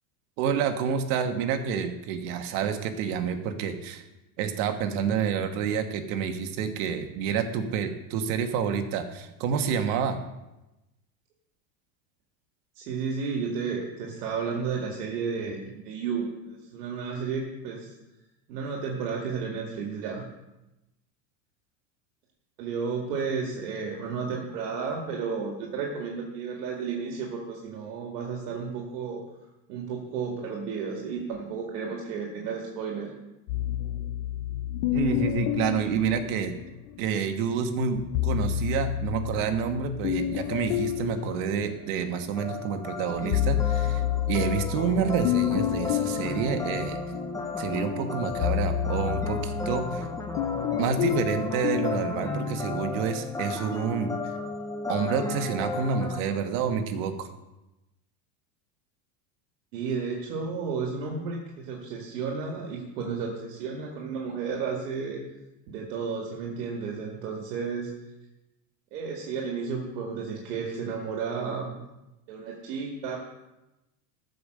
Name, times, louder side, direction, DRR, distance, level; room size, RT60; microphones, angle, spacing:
voice 1, 0.4-4.0 4.4-10.2 34.9-36.5 37.0-47.0 47.6-50.1 50.8-54.1 54.9-57.3, right 7 dB, 60° right, 7 dB, 1.4 m, -28 dB
voice 2, 12.8-17.9 18.5-20.3 22.6-29.2 29.7-33.1 59.7-65.2 65.7-67.9 68.9-71.8 72.3-73.2, right 5 dB, 75° right, 0 dB, 2.1 m, -32 dB
sound 1, 33.5-37.0 37.9-42.4 42.8-52.1, left 12 dB, 50° left, 0.7 m, -30 dB
sound 2, 42.4-56.2, left 3 dB, 5° left, 0.7 m, -34 dB
14.0 x 5.3 x 6.6 m, 0.98 s
supercardioid pair, 155°, 48 cm